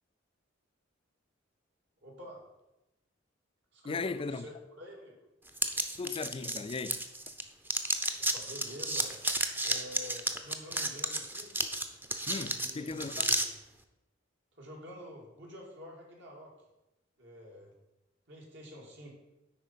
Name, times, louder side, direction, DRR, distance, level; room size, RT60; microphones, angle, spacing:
voice 1, 2.0-2.4 3.7-5.2 8.2-9.1 9.6-11.5 12.5-13.5 14.6-16.5 17.2-17.7 18.3-19.2, equal, 65° right, 2.5 m, -48 dB
voice 2, 3.8-4.5 6.0-7.0 12.3-13.3, left 4 dB, 30° left, 0.4 m, -37 dB
sound 1, 5.6-7.4 7.7-13.5, right 2 dB, 10° right, 0.6 m, -32 dB
10.5 x 4.3 x 5.6 m
head